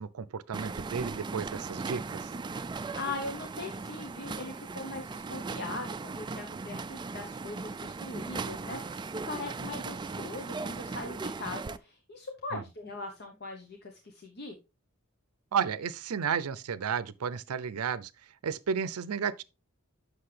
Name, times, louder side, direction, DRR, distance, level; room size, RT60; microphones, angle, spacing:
voice 1, 0.0-2.3 12.5-12.6 15.5-18.1 18.4-19.4, right 6 dB, 90° right, 0.5 m, -32 dB
sound 1, 0.5-11.8, right 4 dB, 20° right, 0.3 m, -38 dB
voice 2, 2.9-14.6, left 3 dB, 50° left, 1.0 m, -40 dB
7.7 x 6.4 x 3.3 m
head